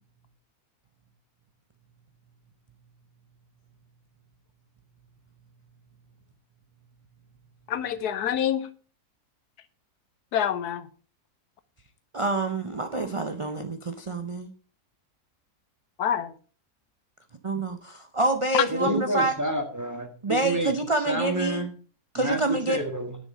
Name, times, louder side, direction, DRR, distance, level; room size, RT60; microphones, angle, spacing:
voice 1, 7.7-8.7 10.3-10.9 16.0-16.3 18.5-18.9, left 9 dB, 85° left, 14 dB, 1.4 m, -26 dB
voice 2, 12.1-14.5 17.4-19.3 20.2-21.6 22.1-22.8, right 2 dB, 40° right, 7 dB, 0.4 m, -27 dB
voice 3, 18.7-20.8 21.0-21.7 22.1-23.2, right 1 dB, 10° right, 4 dB, 1.6 m, -29 dB
10.5 x 6.8 x 5.2 m, 0.40 s
omnidirectional pair, 1.6 m